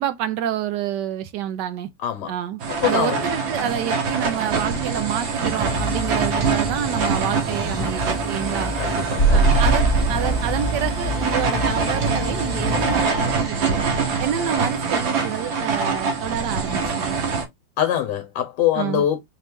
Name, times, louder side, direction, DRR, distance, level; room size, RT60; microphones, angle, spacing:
voice 1, 0.0-1.9 2.3-8.7 9.3-13.9 14.2-17.2 18.7-19.0, right 10 dB, 70° right, 1.1 m, -28 dB
voice 2, 2.0-2.3 2.8-3.2 8.8-9.4 17.8-19.2, left 10 dB, 70° left, 1.2 m, -23 dB
sound 1, 2.6-17.4, right 5 dB, 90° right, 1.9 m, -24 dB
sound 2, 5.6-13.1, right 1 dB, 25° left, 1.5 m, -24 dB
4.1 x 3.1 x 3.4 m
omnidirectional pair, 2.1 m